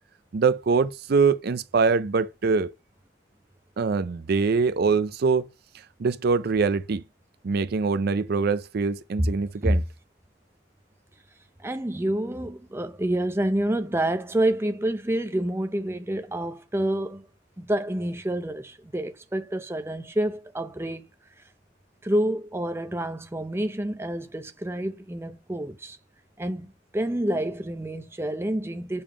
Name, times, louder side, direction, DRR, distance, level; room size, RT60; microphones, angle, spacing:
voice 1, 0.3-2.7 3.8-5.5 5.7-7.0 7.4-9.8, right 4 dB, 55° right, 0.4 m, -23 dB
voice 2, 11.6-17.3 17.6-21.1 22.0-26.0 26.4-26.7 26.9-29.0, right 1 dB, 15° right, 0.6 m, -28 dB
6.9 x 3.6 x 4.9 m
head